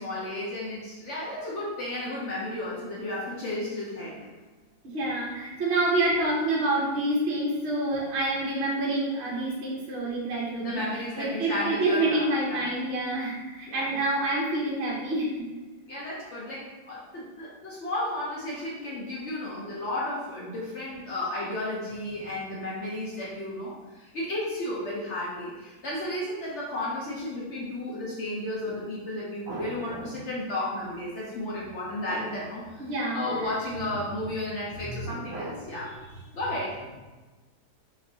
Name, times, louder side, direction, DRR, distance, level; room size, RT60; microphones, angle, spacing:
voice 1, 0.0-4.3 10.6-12.7 13.6-13.9 15.9-32.9 33.1-35.9 36.3-36.8, left 1 dB, 65° left, -6 dB, 0.7 m, -33 dB
voice 2, 4.9-10.8 11.2-15.4 29.5-30.0 32.1-32.2 32.8-33.5 34.9-35.9, right 2 dB, 60° right, -4 dB, 0.7 m, -28 dB
5.0 x 2.5 x 2.7 m, 1.2 s
omnidirectional pair, 2.0 m